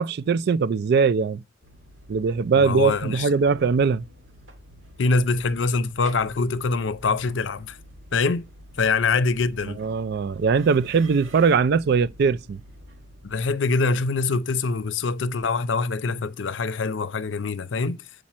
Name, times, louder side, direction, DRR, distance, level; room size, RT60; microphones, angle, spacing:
voice 1, 0.0-1.4 2.1-4.0 9.7-12.6, right 5 dB, 55° right, 0.4 m, -21 dB
Preparing to leave train f, 1.6-13.5, equal, 80° right, 2.5 m, -48 dB
voice 2, 2.6-3.3 5.0-7.8 8.1-8.5 8.8-9.8 13.2-18.0, left 4 dB, 70° left, 0.6 m, -24 dB
7.4 x 5.2 x 4.2 m
head